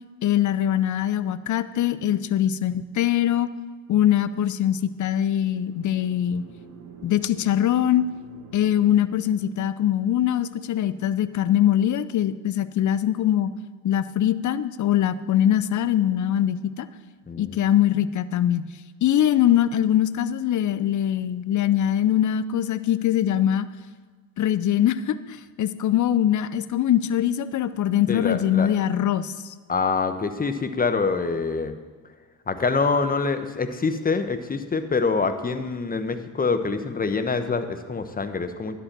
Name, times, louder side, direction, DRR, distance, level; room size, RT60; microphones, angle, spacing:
voice 1, 0.2-3.5 3.9-6.4 7.0-8.1 8.5-13.5 13.8-16.9 17.4-18.7 19.0-23.7 24.4-29.3, left 11 dB, 40° left, 15 dB, 0.6 m, -22 dB
sound 1, 5.0-10.0, right 5 dB, 75° right, 1.7 m, -47 dB
voice 2, 17.3-17.6 28.1-28.7 29.7-31.7 32.5-38.8, left 4 dB, 20° left, 9 dB, 0.9 m, -25 dB
11.0 x 5.5 x 7.4 m, 1.4 s
supercardioid pair, 75°, 48 cm